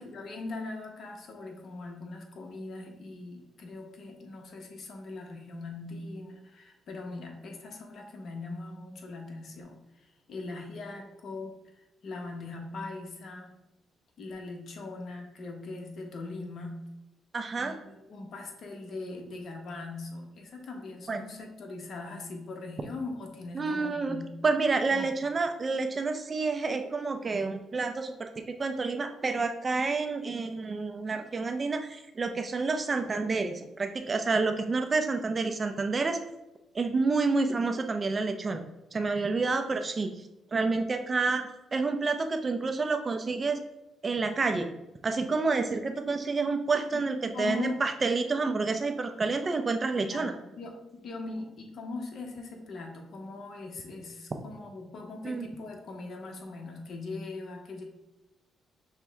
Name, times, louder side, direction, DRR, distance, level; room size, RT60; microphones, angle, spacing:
voice 1, 0.0-13.5 14.2-16.8 17.6-24.4 24.9-25.1 46.9-47.8 50.0-57.8, left 3 dB, 60° left, 2 dB, 0.9 m, -40 dB
voice 2, 17.3-17.7 21.1-21.2 23.5-24.2 24.4-36.2 36.7-38.6 38.9-40.1 40.5-43.6 44.0-44.7 45.0-50.3 55.2-55.5, right 4 dB, 35° right, 7 dB, 0.4 m, -29 dB
5.9 x 2.2 x 3.4 m, 0.96 s
cardioid pair, 90°, 0 cm